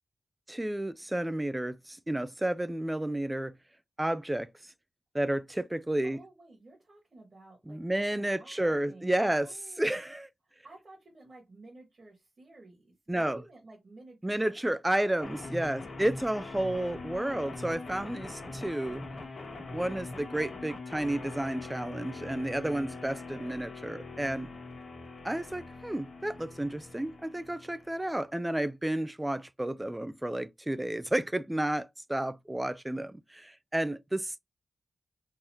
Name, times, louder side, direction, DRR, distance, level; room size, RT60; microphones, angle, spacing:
voice 1, 0.5-3.5 4.0-4.5 5.1-6.2 7.7-9.5 9.8-10.3 13.1-13.4 14.2-19.0 19.7-24.5 25.2-34.4, right 1 dB, 10° right, 0.4 m, -31 dB
voice 2, 6.0-10.0 10.4-16.3, right 2 dB, 45° right, 1.7 m, -54 dB
sound 1, 15.2-28.2, left 3 dB, 75° left, 1.3 m, -43 dB
3.8 x 2.7 x 3.0 m
wide cardioid pair, 105°, 0 cm